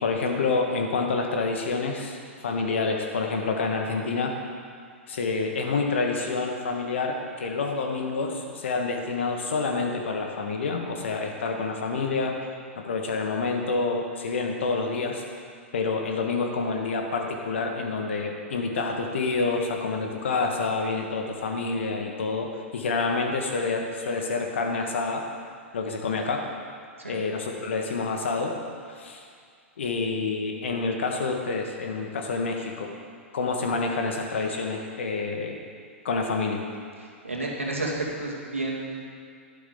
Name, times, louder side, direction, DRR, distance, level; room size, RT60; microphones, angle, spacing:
voice 1, 0.0-4.3 5.1-12.4 12.8-15.2 15.7-25.2 25.7-26.4 27.1-28.5 29.0-29.2 29.8-32.9 33.3-35.6 36.1-36.6, left 4 dB, 65° left, 2 dB, 1.6 m, -28 dB
voice 2, 37.0-39.0, right 2 dB, 85° right, -2 dB, 2.2 m, -31 dB
11.5 x 11.5 x 3.8 m, 2.2 s
figure-of-eight pair, 105°, 7 cm